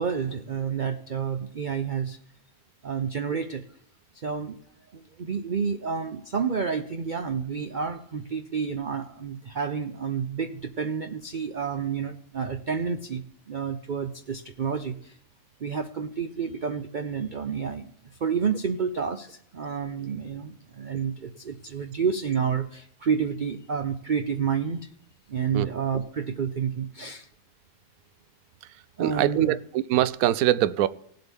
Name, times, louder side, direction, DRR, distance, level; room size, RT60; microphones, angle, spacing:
voice 1, 0.0-2.2 2.8-3.6 4.1-4.6 4.9-15.2 15.6-17.9 18.2-24.9 25.3-27.3 29.0-29.6, right 6 dB, 90° right, 0.4 m, -29 dB
voice 2, 29.0-30.9, right 13 dB, 70° right, 0.9 m, -23 dB
18.5 x 7.8 x 3.5 m
omnidirectional pair, 1.8 m